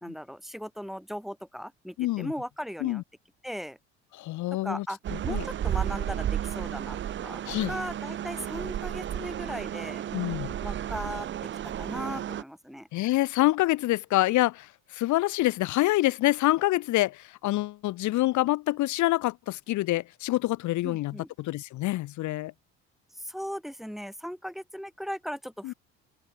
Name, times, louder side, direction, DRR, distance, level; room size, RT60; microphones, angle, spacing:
voice 1, 0.0-3.0 3.4-3.8 4.5-7.0 7.2-7.4 7.7-10.0 10.6-11.5 11.8-12.9 20.8-21.3 23.1-25.7, equal, ahead, 2.2 m, -38 dB
voice 2, 2.0-2.3 2.8-3.0 4.1-4.8 5.3-5.4 7.4-7.7 10.1-10.5 12.9-22.5 25.6-25.7, left 17 dB, 60° left, 1.4 m, -26 dB
sound 1, 5.0-12.4, right 10 dB, 35° right, 0.7 m, -33 dB
open air
hypercardioid pair, 55°, 33 cm